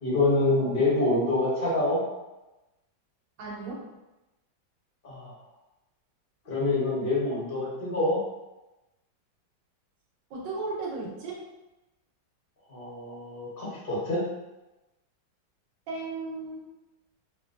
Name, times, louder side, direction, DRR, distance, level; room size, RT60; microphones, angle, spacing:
voice 1, 0.0-2.0 5.0-5.3 6.4-8.2 12.7-14.2, left 2 dB, 35° left, -8 dB, 1.0 m, -26 dB
voice 2, 3.4-3.9 10.3-11.4 15.9-16.6, right 3 dB, 80° right, -4 dB, 1.4 m, -35 dB
3.1 x 2.7 x 2.5 m, 1.0 s
omnidirectional pair, 2.0 m